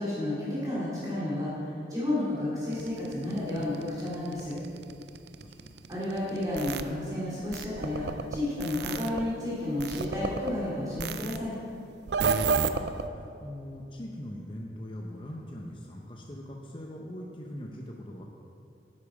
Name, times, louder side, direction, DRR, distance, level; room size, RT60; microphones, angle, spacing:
voice 1, 0.0-4.6 5.9-8.1 8.3-11.5, left 1 dB, 20° right, -9 dB, 2.5 m, -31 dB
sound 1, 2.7-6.8 7.5-9.2 9.8-10.5 11.0-11.4 12.1-13.1, right 5 dB, 70° right, 0.4 m, -31 dB
voice 2, 5.4-5.8 12.4-18.2, left 1 dB, 30° left, -1 dB, 0.7 m, -41 dB
10.5 x 8.5 x 4.9 m, 2.6 s
head